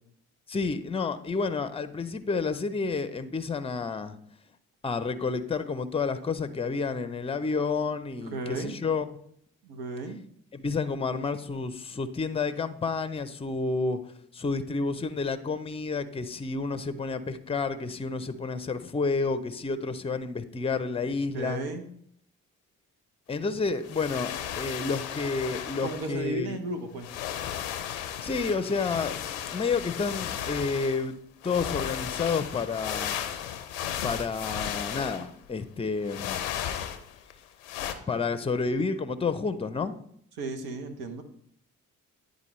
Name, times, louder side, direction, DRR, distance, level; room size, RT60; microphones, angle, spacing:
voice 1, 0.5-4.2 4.8-9.1 10.5-14.0 14.3-21.6 23.3-26.6 28.2-29.2 29.5-31.2 31.4-33.1 34.0-36.4 38.1-40.0, left 4 dB, 15° left, 12 dB, 0.6 m, -30 dB
voice 2, 8.2-8.8 9.6-10.2 21.3-21.9 25.8-27.1 40.4-41.2, right 2 dB, 70° right, 6 dB, 1.0 m, -34 dB
sound 1, 23.8-26.1 27.0-31.1 31.4-35.5 36.0-37.3 37.6-37.9, left 10 dB, 90° left, 0.5 m, -35 dB
9.8 x 3.9 x 3.1 m, 0.66 s
hypercardioid pair, 40°, 39 cm